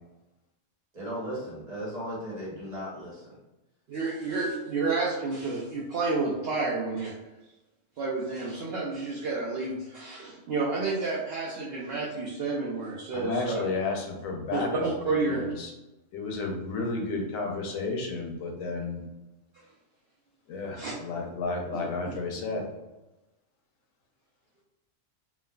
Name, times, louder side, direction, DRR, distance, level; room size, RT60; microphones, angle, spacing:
voice 1, 0.9-3.3, equal, 35° right, -6 dB, 1.0 m, -36 dB
voice 2, 3.9-7.1 8.0-13.6 14.5-15.4 20.8-20.9 21.7-22.2, right 3 dB, 65° right, -5 dB, 0.7 m, -30 dB
voice 3, 13.1-14.9 15.2-15.7 16.1-19.0 20.5-22.6, left 3 dB, 85° left, 1 dB, 1.0 m, -32 dB
3.2 x 2.1 x 2.2 m, 1.0 s
omnidirectional pair, 1.3 m